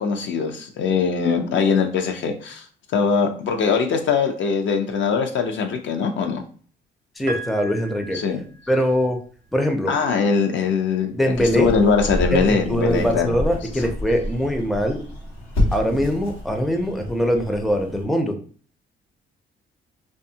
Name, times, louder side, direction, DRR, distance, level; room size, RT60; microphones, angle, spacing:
voice 1, 0.0-2.6 2.9-6.4 8.1-8.4 9.9-13.3, left 5 dB, 70° left, 4 dB, 0.5 m, -21 dB
voice 2, 7.2-8.2 8.7-9.2 9.5-9.9 11.1-11.7 12.3-15.0 15.7-18.4, equal, ahead, 4 dB, 0.4 m, -22 dB
Piano, 7.3-9.3 10.5-10.6, right 2 dB, 65° right, 0.6 m, -36 dB
sound 1, 11.3-18.0, left 1 dB, 90° left, 0.9 m, -29 dB
2.6 x 2.3 x 2.7 m, 0.43 s
cardioid pair, 90°, 20 cm